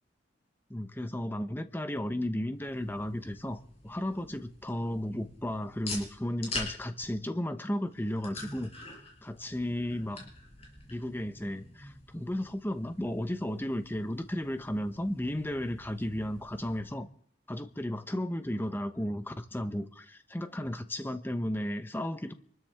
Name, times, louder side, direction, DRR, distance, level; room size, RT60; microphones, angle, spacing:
voice 1, 0.7-8.7 9.2-10.3 10.9-17.1 17.5-22.3, left 1 dB, 10° left, 0.9 m, -34 dB
sound 1, 2.5-16.8, left 2 dB, 35° left, 5.9 m, -46 dB
26.5 x 13.0 x 3.5 m
head